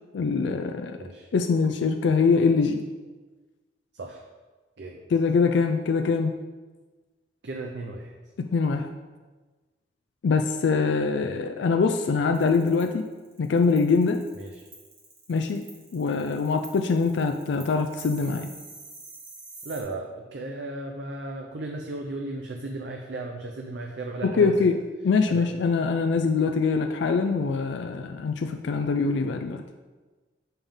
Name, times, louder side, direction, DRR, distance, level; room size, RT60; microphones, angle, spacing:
voice 1, 0.1-1.0 1.3-2.8 5.1-6.4 8.4-8.9 10.2-13.1 13.4-14.2 15.3-15.6 15.9-18.5 24.2-24.8 25.0-29.6, left 4 dB, 80° left, 6 dB, 0.4 m, -23 dB
voice 2, 7.4-8.1 14.3-14.6 19.6-24.5 25.3-25.4, right 2 dB, 70° right, 2 dB, 0.6 m, -35 dB
sound 1, 12.3-19.8, right 3 dB, 50° right, 1.9 m, -46 dB
7.0 x 5.5 x 3.6 m, 1.3 s
head